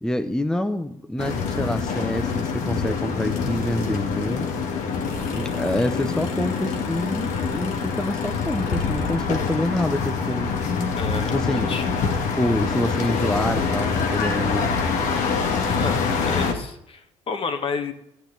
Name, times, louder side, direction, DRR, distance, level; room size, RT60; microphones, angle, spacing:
voice 1, 0.0-4.5 5.2-10.5 11.3-11.7 12.4-14.7, left 1 dB, 5° left, 8 dB, 0.8 m, -27 dB
sound 1, 1.2-16.5, left 5 dB, 70° left, 1.7 m, -25 dB
voice 2, 10.9-11.9 15.8-17.9, left 5 dB, 45° left, 7 dB, 1.5 m, -30 dB
12.0 x 8.1 x 3.9 m, 0.82 s
supercardioid pair, 70°, 13 cm